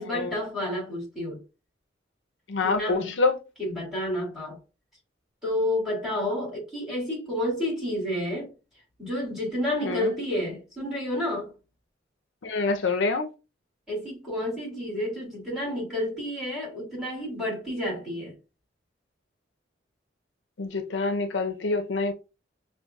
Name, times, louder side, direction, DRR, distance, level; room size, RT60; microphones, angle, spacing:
voice 1, 0.0-1.4 2.6-3.2 3.6-4.6 5.4-8.5 9.0-11.5 13.9-18.3, left 1 dB, ahead, 2.3 m, -30 dB
voice 2, 2.5-3.3 9.9-10.0 12.4-13.3 20.6-22.1, left 3 dB, 75° left, 0.6 m, -26 dB
6.1 x 2.3 x 2.3 m
head